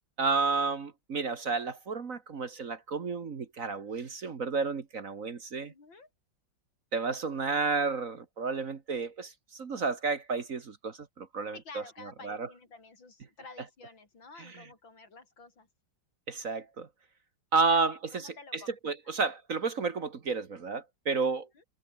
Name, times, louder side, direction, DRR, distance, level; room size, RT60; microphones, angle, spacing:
voice 1, 0.2-5.7 6.9-11.8 12.2-12.5 14.4-14.7 16.3-16.9 17.5-21.6, right 4 dB, 45° right, 1.7 m, -31 dB
voice 2, 5.6-6.1 11.5-15.7 17.9-18.7 19.0-19.1 21.2-21.6, left 3 dB, 75° left, 5.1 m, -51 dB
omnidirectional pair, 2.1 m